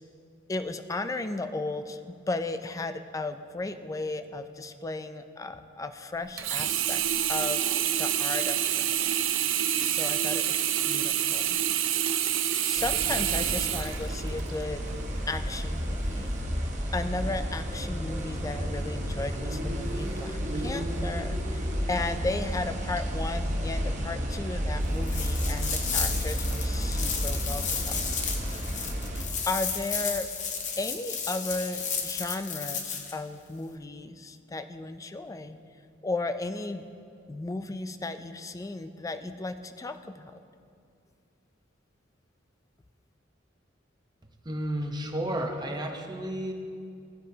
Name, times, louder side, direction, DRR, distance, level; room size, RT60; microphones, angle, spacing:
voice 1, 0.5-7.0 7.3-7.7 8.0-8.9 9.8-11.6 12.6-14.9 15.3-16.4 16.9-28.1 29.5-30.3 30.8-35.6 36.0-36.8 37.3-40.3, left 2 dB, 15° left, 9 dB, 0.3 m, -35 dB
Sink (filling or washing), 6.4-14.6 15.2-15.3, right 10 dB, 80° right, 0.5 m, -27 dB
sound 1, 12.8-29.2, equal, 40° right, 1.1 m, -31 dB
sound 2, 25.0-33.1, left 6 dB, 40° left, 0.8 m, -33 dB
voice 2, 44.4-46.5, right 1 dB, 20° right, 2 dB, 0.8 m, -32 dB
15.0 x 8.9 x 2.8 m, 2.4 s
head